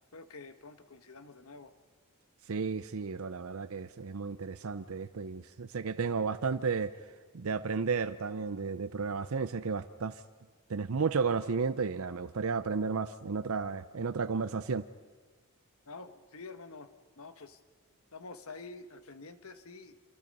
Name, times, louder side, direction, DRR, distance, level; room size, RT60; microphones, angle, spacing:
voice 1, 0.1-1.7 15.9-16.9 17.2-17.6 18.1-19.9, left 3 dB, 70° left, 10 dB, 1.3 m, -48 dB
voice 2, 2.5-6.9 7.3-10.2 10.7-14.9, right 5 dB, 70° right, 11 dB, 0.6 m, -33 dB
28.0 x 26.0 x 5.4 m, 1.4 s
head